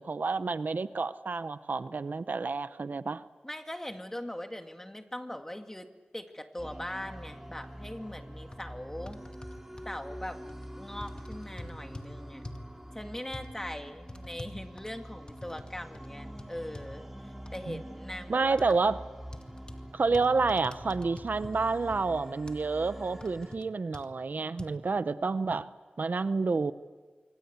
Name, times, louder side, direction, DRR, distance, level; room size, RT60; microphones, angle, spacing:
voice 1, 0.0-3.2 17.7-17.8 18.3-19.0 19.9-25.7 26.0-26.7, right 4 dB, 65° right, 13 dB, 0.7 m, -29 dB
voice 2, 3.4-5.9 6.1-9.2 9.8-10.4 10.8-12.4 12.9-18.8, left 1 dB, 15° left, 5 dB, 2.1 m, -41 dB
sound 1, 6.6-23.6, equal, 10° right, 3.6 m, -45 dB
sound 2, 8.1-8.2 8.5-8.6 9.1-9.9 10.5-10.7 11.0-12.1 12.4-12.7 13.3-13.5 14.1-15.7 15.9-16.1 16.4-16.9 17.5-17.6 18.6-18.7 19.3-19.8 20.1-21.6 21.9-22.0 22.5-22.6 23.2-23.6 23.9-24.1 24.6-24.7, left 2 dB, 30° left, 2.0 m, -45 dB
26.0 x 24.5 x 8.2 m, 1.4 s
wide cardioid pair, 70°, 3 cm